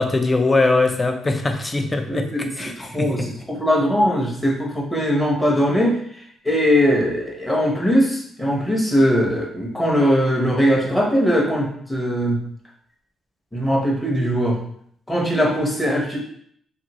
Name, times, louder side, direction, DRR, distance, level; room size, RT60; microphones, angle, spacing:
voice 1, 0.0-3.3, left 3 dB, 25° left, 5 dB, 0.4 m, -21 dB
voice 2, 2.1-6.0 6.4-12.4 13.5-14.6 15.1-16.2, equal, 10° left, -2 dB, 0.9 m, -20 dB
2.6 x 2.6 x 2.9 m, 0.65 s
cardioid pair, 90°, 0 cm